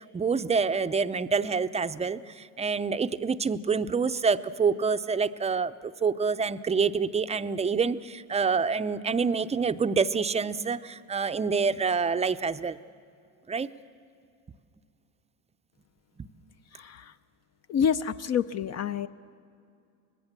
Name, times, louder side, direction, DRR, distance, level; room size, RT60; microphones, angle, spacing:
voice 1, 0.1-12.8 13.5-13.7 16.2-16.3, right 5 dB, 15° right, 11 dB, 0.5 m, -27 dB
voice 2, 16.7-17.2 17.7-19.1, left 8 dB, 40° left, 11 dB, 0.5 m, -28 dB
25.5 x 20.0 x 7.4 m, 2.5 s
supercardioid pair, 105°, 40 cm